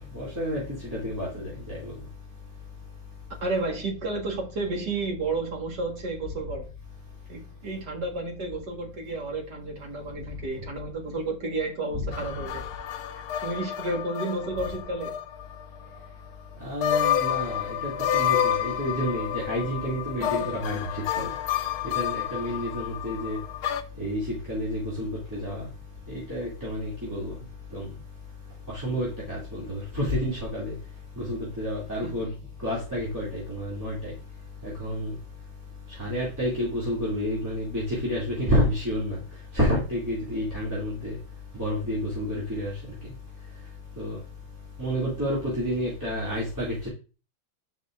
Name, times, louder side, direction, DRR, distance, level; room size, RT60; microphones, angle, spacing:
voice 1, 0.1-0.6 0.9-1.9 11.9-12.1 16.6-21.3 21.8-23.4 24.0-25.7 26.1-27.4 27.7-27.9 28.7-30.7 31.2-32.3 32.6-34.1 34.6-35.1 36.0-39.2 39.5-41.2 41.5-42.9 44.0-44.2 44.8-46.9, equal, 10° right, 2.4 m, -29 dB
voice 2, 3.4-6.7 7.3-12.6 13.4-15.2 20.2-20.5 32.0-32.1, right 2 dB, 55° right, 2.2 m, -31 dB
sound 1, 12.1-15.6 16.0-16.1 16.8-23.8, left 10 dB, 70° left, 0.9 m, -29 dB
11.0 x 5.6 x 2.5 m
omnidirectional pair, 2.2 m